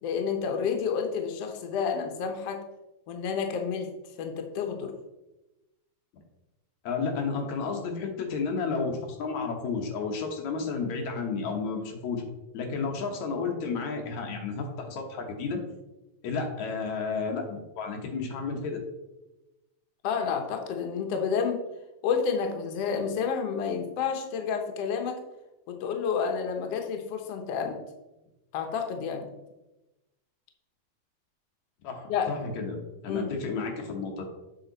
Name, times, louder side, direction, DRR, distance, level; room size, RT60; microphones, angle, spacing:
voice 1, 0.0-2.6 3.1-3.9 4.2-4.9 20.0-21.6 22.0-25.2 25.7-27.8 28.5-29.3 32.1-32.3 33.1-33.3, left 6 dB, 85° left, 4 dB, 1.4 m, -30 dB
voice 2, 6.8-12.2 12.5-15.6 16.2-18.8 31.8-32.0 32.3-32.8 33.0-34.2, left 4 dB, 65° left, 2 dB, 2.2 m, -32 dB
8.4 x 5.8 x 4.0 m, 1.0 s
omnidirectional pair, 4.0 m